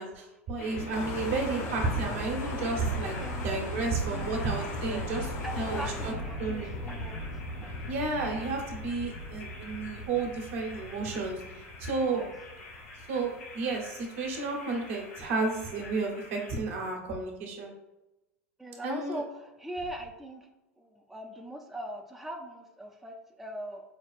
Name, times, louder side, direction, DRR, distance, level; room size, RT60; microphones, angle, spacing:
voice 1, 0.0-5.3 5.6-6.1 6.4-6.7 7.9-11.4 11.8-12.2 13.1-17.7 18.8-19.2, right 3 dB, 65° right, 0 dB, 1.1 m, -32 dB
sound 1, 0.6-16.6, left 1 dB, 75° left, 0.9 m, -39 dB
sound 2, 0.9-6.1, left 4 dB, 45° left, 0.7 m, -39 dB
voice 2, 3.1-4.3 4.7-7.9 12.1-12.3 18.6-20.5 20.8-23.8, right 1 dB, 5° right, 1 dB, 0.4 m, -41 dB
5.1 x 2.3 x 2.5 m, 0.97 s
hypercardioid pair, 90°, 8 cm